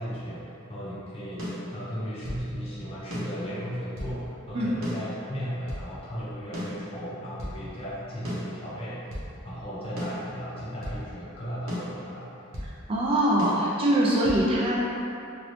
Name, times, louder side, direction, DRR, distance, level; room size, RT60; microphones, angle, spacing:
voice 1, 0.0-9.1 9.4-12.3, equal, 30° left, -9 dB, 0.6 m, -36 dB
sound 1, 1.4-2.5 3.1-4.2 4.8-5.9 6.5-7.6 8.2-9.3 10.0-11.0 11.7-12.8 13.4-14.4, equal, 75° right, 0.8 m, -36 dB
voice 2, 12.9-15.0, right 1 dB, 25° right, -5 dB, 0.3 m, -23 dB
3.0 x 2.5 x 3.0 m, 2.8 s
head